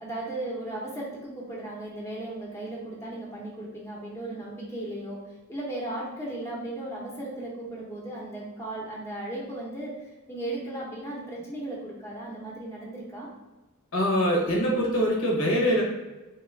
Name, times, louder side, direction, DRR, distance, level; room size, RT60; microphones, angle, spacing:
voice 1, 0.0-5.2 5.5-13.3, right 1 dB, 15° left, -5 dB, 0.7 m, -36 dB
voice 2, 13.9-15.8, equal, 70° left, -2 dB, 0.9 m, -23 dB
3.2 x 2.3 x 3.2 m, 1.1 s
head